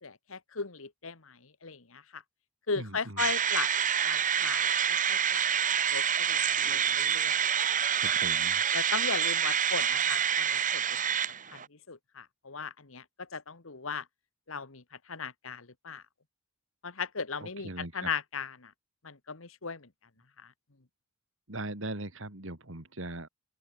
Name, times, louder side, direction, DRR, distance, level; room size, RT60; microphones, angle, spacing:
voice 1, 0.0-2.2 2.7-3.7 4.0-5.4 5.9-7.4 7.8-7.9 8.7-11.0 11.5-14.0 14.5-16.0 16.8-17.7 17.9-18.7 19.0-19.9 20.4-20.5, left 5 dB, 70° left, 1.6 m, -37 dB
voice 2, 2.7-3.3 8.0-8.6 17.4-18.1 21.5-23.3, right 2 dB, 65° right, 3.2 m, -40 dB
sound 1, 3.2-11.7, right 8 dB, 40° right, 1.5 m, -27 dB
open air
head